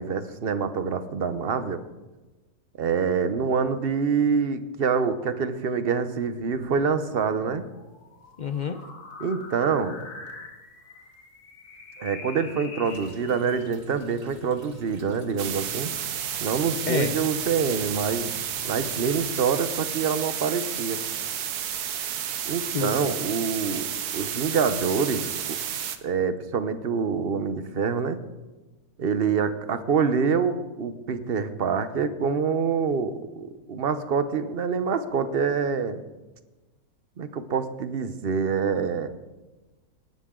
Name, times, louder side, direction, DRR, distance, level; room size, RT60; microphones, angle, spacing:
voice 1, 0.0-1.8 2.8-7.6 9.2-10.0 12.0-15.9 16.4-18.3 18.6-21.0 22.4-23.9 24.1-25.6 26.0-28.2 29.0-36.0 37.2-39.1, right 6 dB, 45° right, 11 dB, 1.0 m, -26 dB
sound 1, 6.3-13.7, left 3 dB, 85° left, 2.4 m, -44 dB
voice 2, 8.4-8.8 16.8-17.2 22.7-23.1, left 6 dB, 60° left, 9 dB, 0.4 m, -29 dB
sound 2, 12.8-19.3, right 4 dB, 60° right, 1.8 m, -46 dB
sound 3, 15.4-26.0, right 9 dB, 90° right, 1.4 m, -31 dB
20.0 x 11.5 x 3.8 m, 1.2 s
omnidirectional pair, 1.6 m